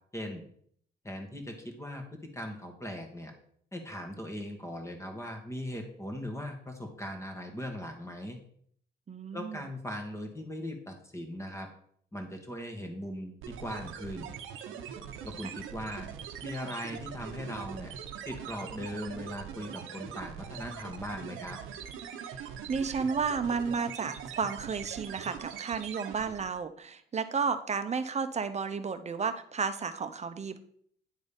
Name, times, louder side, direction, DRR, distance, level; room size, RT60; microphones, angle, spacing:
voice 1, 0.1-0.4 1.0-2.1 2.3-3.3 3.7-8.4 9.3-11.7 12.1-14.3 15.2-16.1 16.4-17.9 18.3-21.6, equal, 15° left, 4 dB, 1.9 m, -39 dB
voice 2, 9.1-9.7 22.2-30.6, right 5 dB, 35° right, 10 dB, 0.8 m, -32 dB
sound 1, 13.4-26.6, right 8 dB, 90° right, 0.9 m, -42 dB
10.0 x 4.0 x 5.3 m, 0.63 s
cardioid pair, 90°, 20 cm